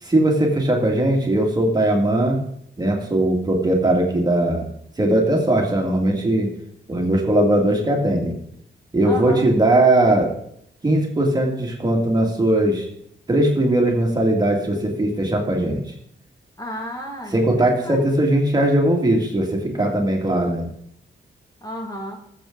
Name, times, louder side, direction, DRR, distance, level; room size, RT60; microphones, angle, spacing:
voice 1, 0.0-2.4 2.8-4.6 5.0-6.5 6.9-8.3 8.9-10.3 10.8-12.9 13.3-15.8 17.3-20.7, right 1 dB, 20° right, 0 dB, 2.1 m, -19 dB
voice 2, 9.0-9.5 16.6-18.1 21.6-22.2, equal, 20° left, 0 dB, 2.1 m, -32 dB
20.0 x 7.4 x 3.9 m, 0.71 s
wide cardioid pair, 175°, 19 cm